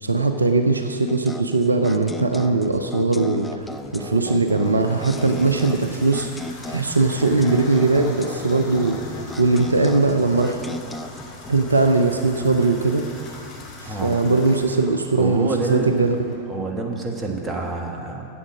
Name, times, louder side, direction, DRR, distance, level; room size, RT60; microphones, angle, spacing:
voice 1, 0.0-3.6 3.9-6.3 6.7-9.0 9.4-10.6 11.5-13.1 13.8-16.4, right 3 dB, 80° right, 7 dB, 0.5 m, -20 dB
sound 1, 1.1-11.5, left 1 dB, 5° left, 0.5 m, -36 dB
Water tap faucet / Bathtub (filling or washing), 3.6-16.4, left 3 dB, 30° left, 2.2 m, -42 dB
sound 2, 5.0-10.2, left 2 dB, 70° left, 1.5 m, -45 dB
voice 2, 13.8-14.2 15.2-15.9 16.5-18.3, right 3 dB, 20° right, 1 dB, 1.6 m, -27 dB
9.8 x 7.7 x 7.4 m, 2.5 s
figure-of-eight pair, 90°, 0 cm